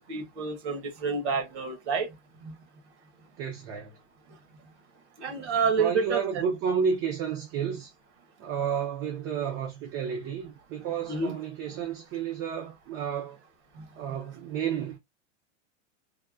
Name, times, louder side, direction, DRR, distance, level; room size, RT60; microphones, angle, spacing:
voice 1, 0.0-2.1 2.4-2.5 5.2-6.2 11.1-11.4 13.8-13.9, right 5 dB, 65° right, 1.4 m, -28 dB
voice 2, 3.4-3.9 5.8-7.9 8.4-13.4 14.0-15.0, right 7 dB, 30° right, 0.6 m, -31 dB
3.5 x 2.3 x 2.4 m
supercardioid pair, 150°, 38 cm